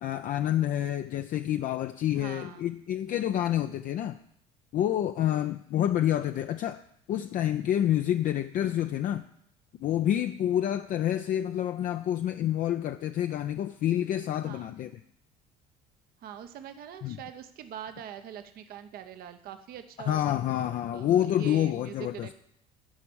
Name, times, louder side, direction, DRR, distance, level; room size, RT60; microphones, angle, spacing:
voice 1, 0.0-4.2 4.7-6.8 7.1-9.2 9.8-14.9 17.0-17.2 20.1-22.3, left 11 dB, 50° left, 0.4 m, -28 dB
voice 2, 2.1-2.7 5.2-5.5 14.4-14.7 16.2-20.2 20.9-22.3, right 9 dB, 55° right, 0.8 m, -43 dB
11.0 x 5.1 x 7.0 m
hypercardioid pair, 65°, 18 cm